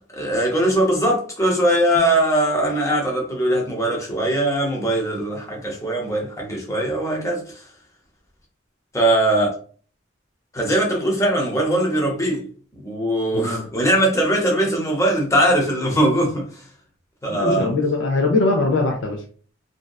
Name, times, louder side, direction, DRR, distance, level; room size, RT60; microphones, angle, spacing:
voice 1, 0.2-7.4 8.9-9.5 10.5-12.4 12.8-16.6 17.2-17.7, right 1 dB, 15° left, 0.7 m, -20 dB
voice 2, 13.3-13.7 17.3-19.2, left 3 dB, 65° left, 0.5 m, -21 dB
2.6 x 2.2 x 2.3 m
head